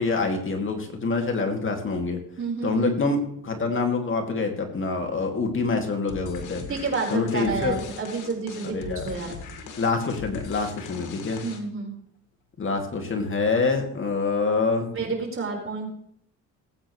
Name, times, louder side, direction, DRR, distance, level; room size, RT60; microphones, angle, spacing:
voice 1, 0.0-2.2 2.6-6.6 7.1-7.8 8.6-9.0 9.8-11.4 12.6-14.9, left 4 dB, 40° left, 3 dB, 2.4 m, -26 dB
voice 2, 2.4-2.9 6.7-9.3 11.4-11.9 14.9-15.9, right 4 dB, 45° right, 0 dB, 4.5 m, -30 dB
sound 1, 6.1-11.8, left 5 dB, 80° left, 2.2 m, -40 dB
19.0 x 8.9 x 3.2 m, 0.68 s
cardioid pair, 90°, 30 cm